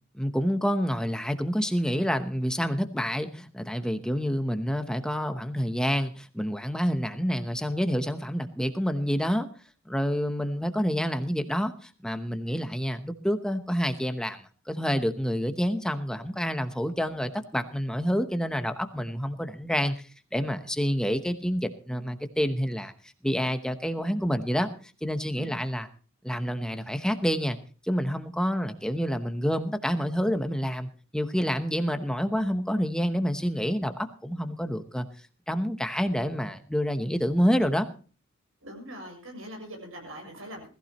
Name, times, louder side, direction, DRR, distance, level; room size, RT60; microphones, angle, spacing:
voice 1, 0.1-9.5 9.9-20.0 20.3-22.9 23.2-24.7 25.0-25.9 26.2-27.6 27.9-35.1 35.5-37.9, equal, 5° left, 8 dB, 0.9 m, -28 dB
voice 2, 38.6-40.7, equal, 80° right, 2 dB, 6.8 m, -42 dB
20.5 x 14.5 x 3.0 m, 0.38 s
head